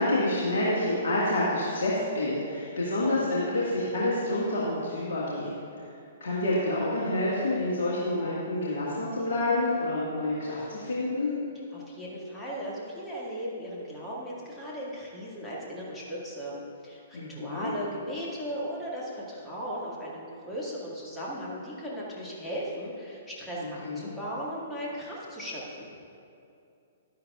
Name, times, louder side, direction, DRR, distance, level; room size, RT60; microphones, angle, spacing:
voice 1, 0.0-5.5 5.8-5.9 6.2-11.3 17.1-17.7 23.6-24.1, left 1 dB, 55° left, -7 dB, 1.7 m, -28 dB
voice 2, 11.7-25.9, equal, 10° left, -6 dB, 2.0 m, -37 dB
11.5 x 10.5 x 2.4 m, 2.6 s
figure-of-eight pair, 115°, 0 cm